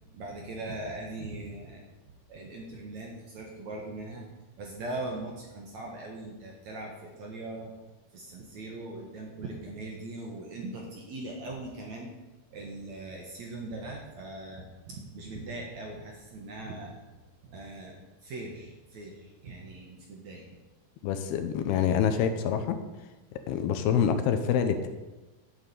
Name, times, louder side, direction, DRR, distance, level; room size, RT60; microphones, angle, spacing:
voice 1, 0.1-1.8 2.3-4.3 4.6-7.7 8.1-12.1 12.5-16.9 17.4-17.9 18.2-20.4, right 2 dB, 55° right, 0 dB, 2.2 m, -40 dB
voice 2, 21.0-22.8 23.5-24.9, left 8 dB, 75° left, 8 dB, 2.7 m, -26 dB
11.5 x 7.4 x 8.3 m, 1.1 s
omnidirectional pair, 4.9 m